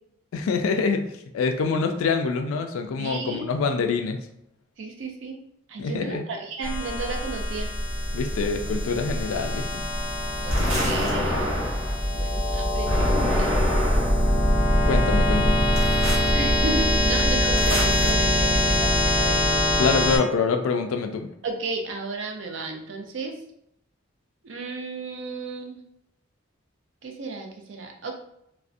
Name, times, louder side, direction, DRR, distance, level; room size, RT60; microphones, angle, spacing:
voice 1, 0.3-4.2 5.8-6.2 8.1-9.8 14.9-15.7 19.8-21.3, left 4 dB, 85° left, 6 dB, 0.3 m, -25 dB
voice 2, 3.0-3.5 4.8-5.4 5.7-7.7 10.4-11.6 12.1-13.1 13.4-13.6 16.3-19.6 21.4-23.4 24.4-25.8 27.0-28.1, right 3 dB, 65° right, 3 dB, 0.4 m, -33 dB
sound 1, 6.6-20.2, left 1 dB, 10° right, 0.6 m, -23 dB
sound 2, 10.5-12.0 12.9-14.3 15.7-16.3 17.6-18.1, equal, 85° right, 0.9 m, -26 dB
2.4 x 2.1 x 2.4 m, 0.76 s
head